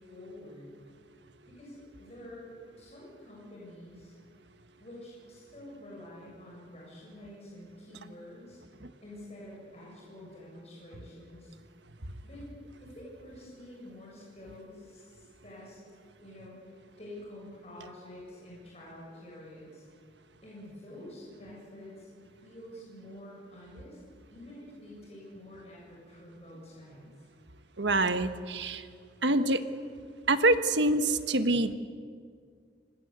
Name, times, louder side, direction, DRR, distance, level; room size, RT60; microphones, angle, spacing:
voice 1, 0.1-0.7 1.5-4.1 4.8-8.6 9.0-11.5 12.2-12.5 12.8-15.8 16.2-19.8 20.4-22.1 22.4-24.0 24.3-27.0, left 1 dB, 35° left, -4 dB, 7.7 m, -48 dB
voice 2, 27.8-28.8 29.2-29.6 30.3-31.7, right 2 dB, 80° right, 9 dB, 1.5 m, -25 dB
27.5 x 26.0 x 8.3 m, 2.1 s
head